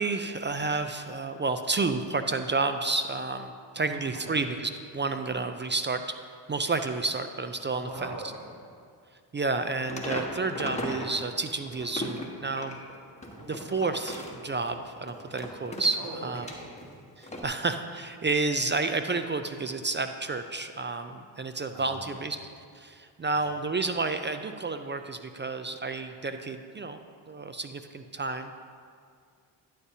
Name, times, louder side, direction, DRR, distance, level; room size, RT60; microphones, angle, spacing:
voice 1, 0.0-6.2 6.5-8.1 9.3-12.8 13.5-16.5 17.2-22.4 22.7-27.0 27.3-28.5, right 3 dB, 25° right, 8 dB, 0.4 m, -30 dB
voice 2, 3.8-4.4 7.7-8.5 13.3-13.7 15.9-17.1 21.7-22.3 23.3-23.5, right 2 dB, 55° right, -4 dB, 2.2 m, -42 dB
sound 1, 9.9-11.2 11.5-16.9 17.2-17.4, left 1 dB, 15° left, 1.4 m, -37 dB
11.0 x 8.3 x 2.8 m, 2.2 s
supercardioid pair, 55°, 46 cm